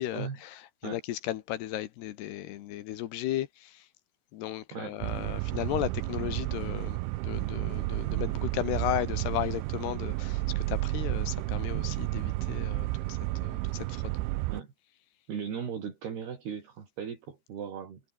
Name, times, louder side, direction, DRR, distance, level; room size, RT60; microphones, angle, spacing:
voice 1, 0.0-3.9 4.3-14.2, left 13 dB, 70° left, 3.0 m, -35 dB
voice 2, 4.7-5.0 14.5-14.7 15.3-18.0, right 7 dB, 60° right, 5.8 m, -37 dB
sound 1, 5.0-14.6, right 20 dB, 85° right, 3.0 m, -32 dB
omnidirectional pair, 5.5 m